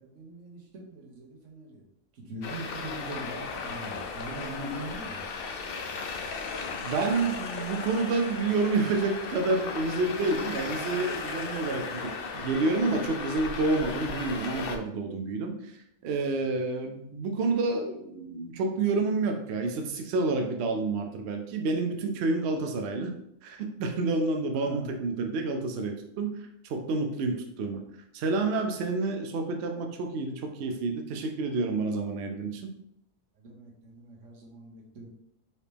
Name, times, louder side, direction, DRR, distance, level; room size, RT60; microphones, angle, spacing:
voice 1, 0.0-1.8 2.3-5.2 24.5-24.9 33.4-35.1, right 1 dB, 55° right, -1 dB, 1.2 m, -41 dB
Traffic noise roadway noise, 2.4-14.8, left 4 dB, 85° left, 0.5 m, -36 dB
voice 2, 6.8-23.1 23.4-27.8 28.1-32.7, right 3 dB, 70° right, 3 dB, 0.6 m, -29 dB
4.2 x 2.9 x 3.4 m, 0.76 s
omnidirectional pair, 1.6 m